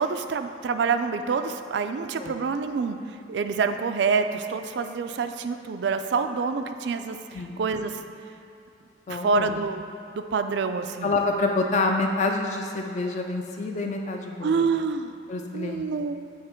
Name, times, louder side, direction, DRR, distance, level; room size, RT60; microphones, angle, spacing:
voice 1, 0.0-8.0 9.1-9.8 10.1-11.1 14.4-15.2 15.5-16.2, right 5 dB, 65° right, 8 dB, 0.3 m, -27 dB
voice 2, 9.1-9.5 11.0-14.7 15.3-15.8, left 3 dB, 40° left, 2 dB, 0.4 m, -27 dB
8.8 x 3.5 x 4.4 m, 2.7 s
head